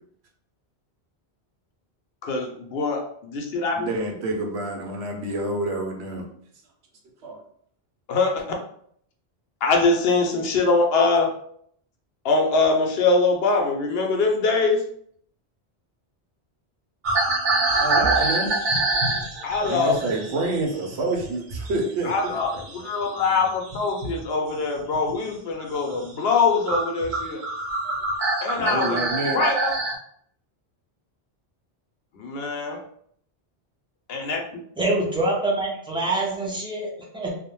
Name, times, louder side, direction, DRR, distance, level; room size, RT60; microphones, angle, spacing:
voice 1, 2.2-3.9 8.1-8.4 9.6-11.4 12.2-14.8 19.4-19.9 22.0-27.4 28.4-29.0 29.3-29.7 32.1-32.8 34.1-34.4, left 3 dB, 70° left, 2 dB, 0.8 m, -23 dB
voice 2, 3.8-6.3 7.2-7.4 17.8-18.6 19.6-22.4 22.8-22.9 27.8-28.0 28.6-29.5, right 2 dB, 85° right, 2 dB, 0.9 m, -28 dB
sound 1, 17.0-21.8 22.1-24.2 24.8-25.1 25.6-25.8 26.3-26.4 26.7-29.9, right 2 dB, 55° right, 0.7 m, -25 dB
voice 3, 34.8-37.4, right 2 dB, 5° right, -4 dB, 0.4 m, -25 dB
2.4 x 2.1 x 2.9 m, 0.64 s
omnidirectional pair, 1.1 m